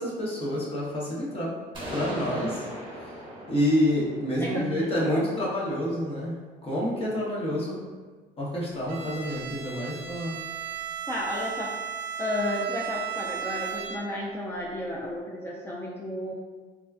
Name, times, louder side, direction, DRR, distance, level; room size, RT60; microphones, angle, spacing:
voice 1, 0.0-1.6 1.9-2.7 3.5-7.8 8.4-10.4, equal, 35° left, -5 dB, 0.8 m, -28 dB
sound 1, 1.7-5.5, equal, 30° right, 1.0 m, -39 dB
voice 2, 4.4-5.3 11.1-11.8 12.2-16.3, left 1 dB, 15° left, -4 dB, 0.3 m, -32 dB
Bowed string instrument, 8.9-14.3, right 8 dB, 80° right, 0.4 m, -35 dB
3.4 x 2.2 x 2.3 m, 1.4 s
cardioid pair, 110°, 17 cm